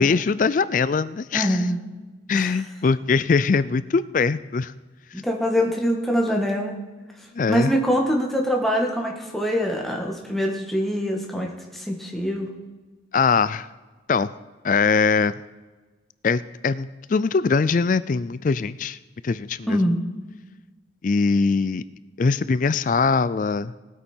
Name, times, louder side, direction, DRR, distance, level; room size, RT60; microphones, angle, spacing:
voice 1, 0.0-1.6 2.3-4.7 7.3-7.7 13.1-13.7 14.1-14.3 14.6-15.3 16.2-19.0 19.2-19.8 21.0-21.8 22.2-23.7, left 4 dB, 45° left, 16 dB, 0.4 m, -22 dB
voice 2, 1.3-1.8 2.3-2.6 5.1-6.7 7.5-12.5 19.7-20.0, equal, ahead, 0 dB, 1.7 m, -24 dB
19.0 x 8.5 x 4.5 m, 1.3 s
head